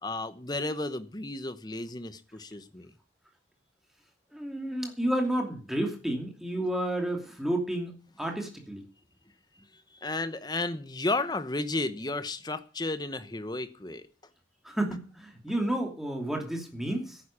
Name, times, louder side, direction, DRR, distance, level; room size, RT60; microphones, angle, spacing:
voice 1, 0.0-2.9 6.6-6.7 9.9-14.0, left 2 dB, 20° left, 1.0 m, -33 dB
voice 2, 4.3-8.8 14.6-17.2, right 1 dB, ahead, 2.7 m, -31 dB
11.0 x 9.8 x 8.6 m
head